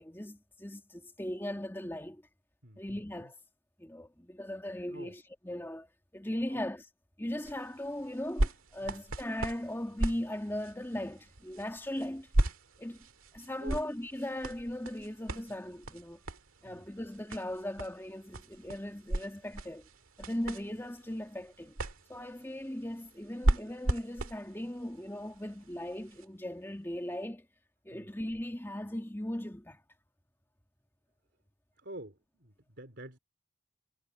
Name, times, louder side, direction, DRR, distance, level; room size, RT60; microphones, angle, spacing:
voice 1, 0.0-2.2 2.8-3.4 3.8-5.9 6.1-6.9 7.2-12.3 12.8-13.1 13.3-16.2 16.6-19.9 20.2-21.8 22.1-27.5 27.9-29.8, left 1 dB, 10° left, 1.9 m, -38 dB
voice 2, 2.6-3.3 4.9-5.1 6.5-6.6 8.8-9.0 13.6-13.8 16.6-16.8 27.9-28.1 31.8-33.2, right 1 dB, 55° right, 3.7 m, -48 dB
sound 1, 7.4-26.2 26.9-27.0, right 1 dB, 85° right, 1.9 m, -37 dB
head